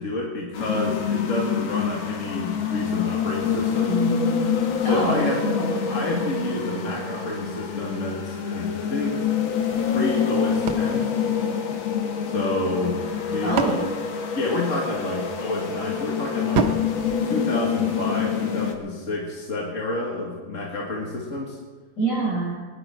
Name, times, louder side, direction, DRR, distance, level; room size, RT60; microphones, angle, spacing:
voice 1, 0.0-4.0 4.8-5.4 5.9-9.2 9.8-11.1 12.2-13.8 14.3-16.7 17.2-21.6, left 2 dB, 40° left, -3 dB, 2.2 m, -29 dB
sound 1, 0.5-18.7, left 7 dB, 85° left, 2.0 m, -26 dB
voice 2, 3.9-4.5 4.8-5.8 13.4-13.8 22.0-22.6, right 3 dB, 65° left, -4 dB, 5.9 m, -26 dB
sound 2, 10.7-12.2 13.1-15.0 16.5-18.1, right 4 dB, 85° right, 1.8 m, -30 dB
22.0 x 11.0 x 4.5 m, 1.4 s
omnidirectional pair, 2.1 m